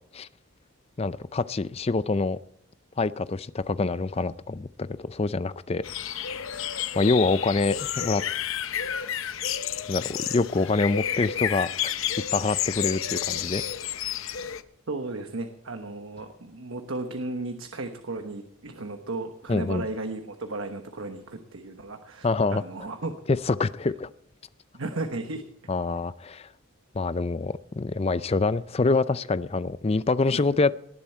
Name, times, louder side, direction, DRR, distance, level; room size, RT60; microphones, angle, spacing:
voice 1, 1.0-2.4 3.0-5.8 6.9-8.2 9.9-11.9 12.3-13.6 19.5-19.9 22.2-22.6 23.3-24.1 25.7-26.5 26.9-30.7, left 3 dB, 30° left, 15 dB, 0.4 m, -26 dB
sound 1, 5.8-14.6, left 9 dB, 65° left, 0.7 m, -30 dB
voice 2, 14.9-23.1 24.7-25.4 30.2-30.4, right 2 dB, 70° right, 6 dB, 1.1 m, -35 dB
19.0 x 11.0 x 4.5 m, 0.73 s
head